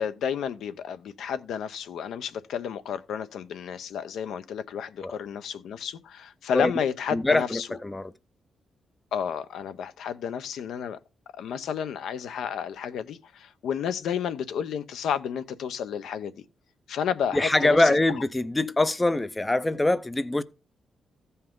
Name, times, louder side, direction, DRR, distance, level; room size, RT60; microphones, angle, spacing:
voice 1, 0.0-7.7 9.1-11.0 11.3-16.3 16.9-17.9, left 8 dB, 80° left, 0.7 m, -31 dB
voice 2, 7.1-8.1 17.3-20.4, left 2 dB, 10° left, 0.4 m, -23 dB
15.0 x 5.5 x 3.7 m
wide cardioid pair, 165°, 0 cm